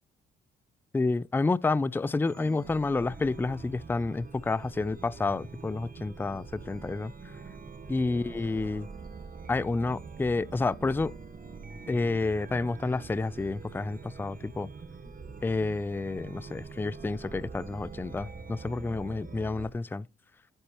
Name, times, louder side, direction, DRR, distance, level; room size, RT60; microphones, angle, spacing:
voice 1, 0.9-7.1 7.9-8.9 9.5-11.1 11.9-14.7 15.4-20.0, left 3 dB, 10° left, 0.4 m, -29 dB
Chime, 2.2-19.7, right 4 dB, 45° right, 1.6 m, -44 dB
10.0 x 9.9 x 3.0 m
cardioid pair, 90°, 20 cm